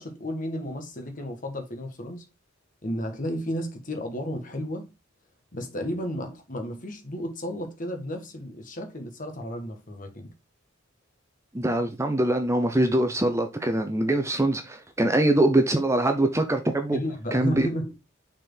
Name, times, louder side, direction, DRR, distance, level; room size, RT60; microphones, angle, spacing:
voice 1, 0.0-2.2 2.8-4.9 5.5-10.3 16.9-17.9, equal, 40° left, 1.7 m, -33 dB
voice 2, 11.5-17.0 17.3-17.7, right 1 dB, 15° right, 0.7 m, -23 dB
6.3 x 4.4 x 3.9 m
head